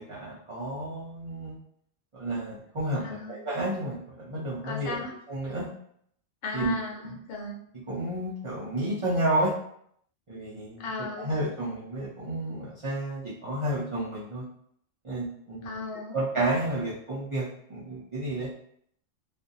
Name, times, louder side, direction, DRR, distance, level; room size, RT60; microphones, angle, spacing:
voice 1, 0.0-1.6 2.1-4.9 5.3-5.7 6.5-6.7 7.9-9.5 10.3-10.9 11.2-14.4 15.0-15.8 16.1-18.5, right 1 dB, 40° right, -8 dB, 0.4 m, -31 dB
voice 2, 3.0-3.5 4.6-5.2 6.4-7.6 10.8-11.3 15.6-16.2, left 3 dB, 75° left, -1 dB, 1.0 m, -36 dB
2.4 x 2.2 x 2.6 m, 0.67 s
omnidirectional pair, 1.3 m